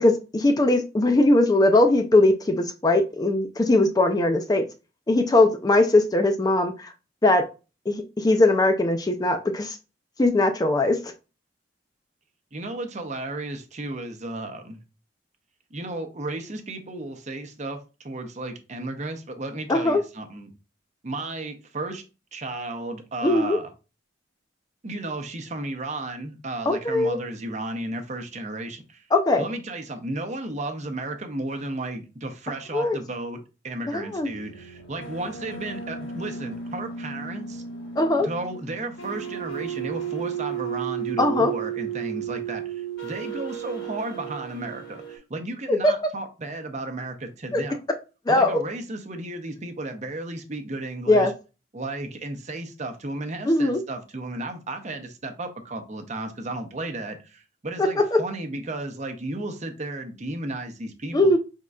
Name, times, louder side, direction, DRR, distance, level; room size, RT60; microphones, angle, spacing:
voice 1, 0.0-4.6 5.1-6.9 7.2-7.4 7.9-9.8 10.2-11.0 19.7-20.0 23.2-23.6 26.7-27.2 29.1-29.4 32.7-33.0 33.9-34.3 38.0-38.3 41.2-41.5 45.7-45.9 47.5-47.6 48.3-48.5 51.1-51.3 53.5-53.8 57.8-58.2 61.1-61.4, left 2 dB, 20° left, 0.4 m, -20 dB
voice 2, 12.5-14.8 15.7-20.5 21.0-22.0 22.3-23.7 24.8-29.0 29.3-37.6 38.2-47.8 48.3-51.3 51.7-61.3, right 2 dB, 40° right, 0.7 m, -34 dB
sound 1, 34.2-45.2, right 8 dB, 85° left, 1.4 m, -34 dB
5.2 x 3.6 x 2.3 m
head